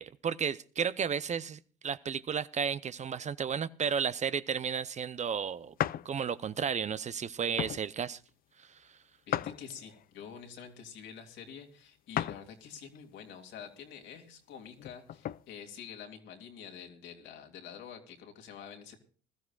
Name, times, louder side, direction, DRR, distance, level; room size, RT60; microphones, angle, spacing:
voice 1, 0.0-5.7 6.0-8.2 8.6-9.0, right 7 dB, 35° right, 15 dB, 0.6 m, -33 dB
sound 1, 5.8-6.1 6.6-6.8 7.6-7.8 9.3-10.0 12.1-12.5 12.9-13.0 14.7-15.4, left 11 dB, 45° left, 0.5 m, -34 dB
voice 2, 9.3-19.0, left 7 dB, 70° left, 3 dB, 2.6 m, -47 dB
21.0 x 13.0 x 2.4 m, 0.42 s
hypercardioid pair, 70°, 20 cm